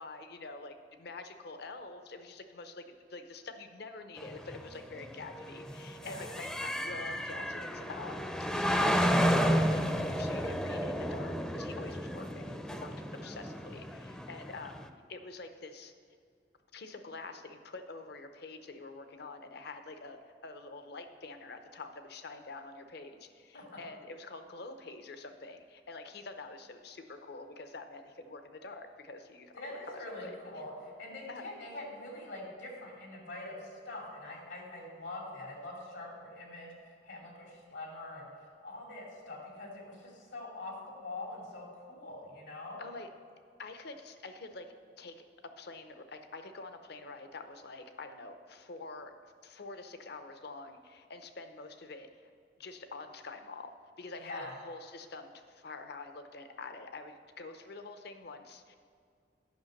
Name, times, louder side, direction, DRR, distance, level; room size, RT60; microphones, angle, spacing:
voice 1, 0.0-12.9 13.2-14.8 15.1-15.9 16.7-30.4 31.3-31.5 42.8-43.1 43.6-45.2 45.6-52.3 52.6-53.7 54.0-58.7, left 3 dB, 65° left, 8 dB, 0.7 m, -46 dB
sound 1, 4.2-14.9, equal, 5° left, 0.5 m, -32 dB
voice 2, 6.0-6.3 23.5-23.6 29.5-30.7 31.0-42.8 54.2-54.5, left 2 dB, 90° left, -2 dB, 2.7 m, -44 dB
10.5 x 5.8 x 6.5 m, 2.3 s
head